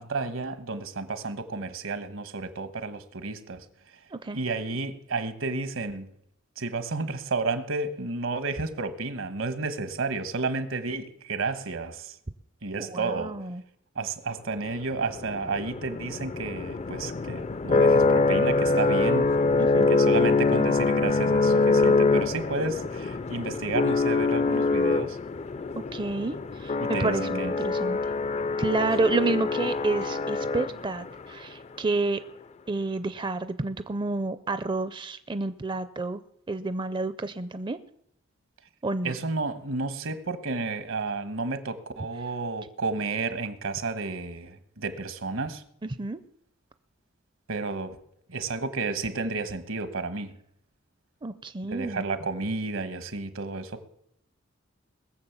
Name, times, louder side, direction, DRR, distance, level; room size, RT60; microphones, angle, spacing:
voice 1, 0.0-3.6 4.3-6.1 6.6-12.1 12.6-13.4 13.9-19.3 19.9-25.2 26.8-27.5 28.8-28.9 39.0-45.6 47.5-48.0 48.3-50.3 51.7-53.9, right 3 dB, 80° right, 1.4 m, -31 dB
voice 2, 12.8-13.6 19.6-19.9 25.9-28.0 28.6-32.2 32.7-36.2 36.5-37.8 38.8-39.2 45.8-46.2 51.2-52.1, right 3 dB, 25° right, 0.5 m, -29 dB
sound 1, 14.9-31.1, left 3 dB, 35° left, 0.4 m, -24 dB
20.5 x 7.4 x 7.2 m
head